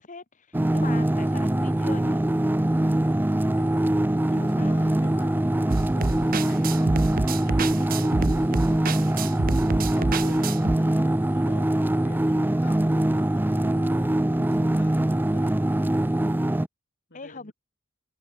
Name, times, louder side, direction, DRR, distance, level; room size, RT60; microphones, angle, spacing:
voice 1, 0.0-2.2 4.4-4.9 17.1-17.5, left 3 dB, 40° left, 1.5 m, -40 dB
sound 1, 0.5-16.7, right 1 dB, 10° right, 0.5 m, -23 dB
voice 2, 3.6-9.1 9.7-16.2 17.1-17.5, left 2 dB, 55° left, 6.2 m, -48 dB
sound 2, 5.7-10.8, right 3 dB, 45° right, 0.8 m, -27 dB
head